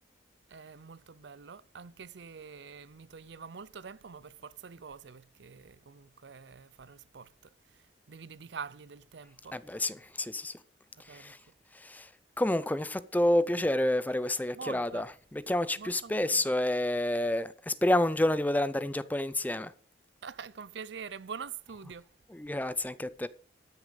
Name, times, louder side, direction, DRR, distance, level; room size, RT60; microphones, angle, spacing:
voice 1, 0.5-9.6 10.9-11.5 14.5-15.1 15.8-16.4 20.2-22.1, right 6 dB, 70° right, 0.5 m, -45 dB
voice 2, 9.5-10.6 11.0-11.4 11.7-12.1 12.4-15.1 15.3-19.7 22.3-23.3, left 1 dB, 10° left, 0.5 m, -29 dB
13.5 x 6.5 x 6.5 m
head